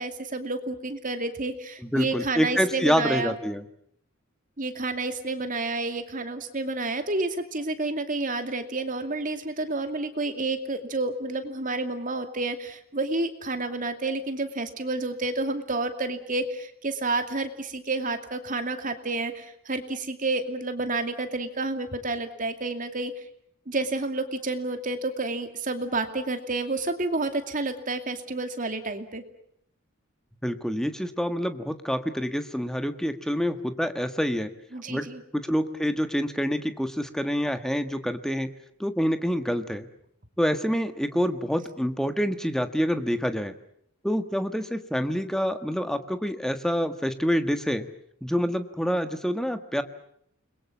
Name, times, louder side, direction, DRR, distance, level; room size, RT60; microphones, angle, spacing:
voice 1, 0.0-3.3 4.6-23.1 23.7-29.2 34.7-35.2, right 2 dB, 40° right, 7 dB, 2.5 m, -30 dB
voice 2, 1.8-3.6 30.4-34.5 34.9-35.1 35.3-38.5 38.8-39.9 40.4-43.5 44.0-47.9 48.2-49.8, equal, 5° left, 8 dB, 1.5 m, -27 dB
29.5 x 22.0 x 7.3 m, 0.69 s
head